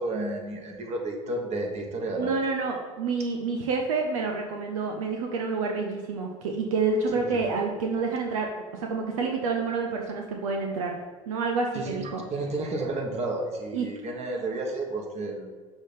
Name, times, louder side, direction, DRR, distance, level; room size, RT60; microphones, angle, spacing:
voice 1, 0.0-2.3 7.0-7.4 11.7-12.0 12.3-15.5, right 2 dB, 40° right, 2 dB, 1.5 m, -31 dB
voice 2, 2.1-11.0 11.3-12.2 13.7-13.9, right 4 dB, 80° right, 2 dB, 0.7 m, -28 dB
6.3 x 3.3 x 5.5 m, 1.4 s
hypercardioid pair, 80°, 17 cm